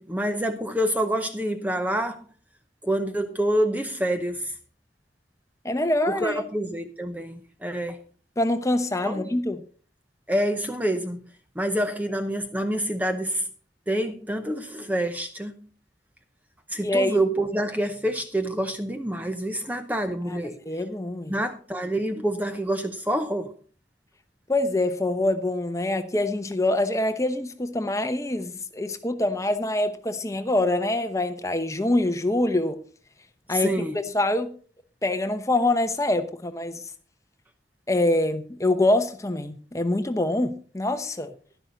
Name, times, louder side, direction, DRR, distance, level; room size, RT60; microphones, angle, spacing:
voice 1, 0.0-2.3 2.8-4.6 6.1-8.0 9.0-9.3 10.3-11.3 11.6-13.5 13.9-15.5 16.7-20.6 21.3-23.5 33.5-34.0, right 1 dB, 10° right, 7 dB, 0.7 m, -27 dB
voice 2, 5.6-6.4 8.4-9.6 16.8-17.2 20.3-20.4 20.7-21.4 24.5-32.8 33.5-33.8 34.1-34.5 35.0-36.8 37.9-41.3, left 1 dB, 15° left, 9 dB, 0.9 m, -25 dB
11.5 x 11.0 x 3.9 m, 0.41 s
head